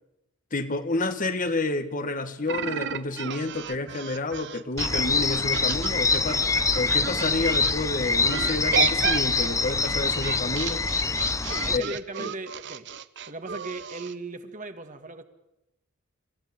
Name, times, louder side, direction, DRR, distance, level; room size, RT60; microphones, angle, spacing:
voice 1, 0.5-6.4 6.7-10.8 11.7-11.8 12.2-12.3, left 2 dB, 40° left, 1.5 m, -29 dB
sound 1, 2.5-7.7 8.3-14.1, right 7 dB, 55° right, 1.0 m, -33 dB
sound 2, 4.8-11.8, left 4 dB, 15° left, 0.8 m, -25 dB
voice 2, 11.6-12.9 13.3-15.2, right 2 dB, 35° right, 2.0 m, -37 dB
27.0 x 15.5 x 9.9 m
head